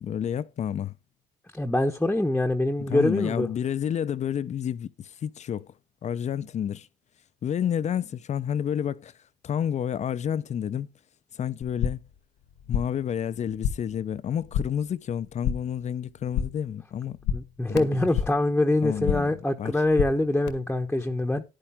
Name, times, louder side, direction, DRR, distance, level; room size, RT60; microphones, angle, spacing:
voice 1, 0.0-0.9 2.9-5.7 6.0-6.9 7.4-9.1 9.4-10.9 11.3-12.0 12.7-17.2 17.7-17.9 18.8-19.3 19.6-19.7, left 9 dB, 45° left, 0.7 m, -30 dB
voice 2, 1.5-3.5 17.3-21.4, left 1 dB, 5° left, 1.1 m, -24 dB
sound 1, 11.6-12.2 12.4-13.1 13.3-14.0 14.3-14.9 15.2-15.8 16.1-16.7 17.0-18.5 18.8-19.4 19.7-20.5, left 8 dB, 90° left, 1.9 m, -31 dB
10.5 x 10.0 x 3.6 m
cardioid pair, 110°, 17 cm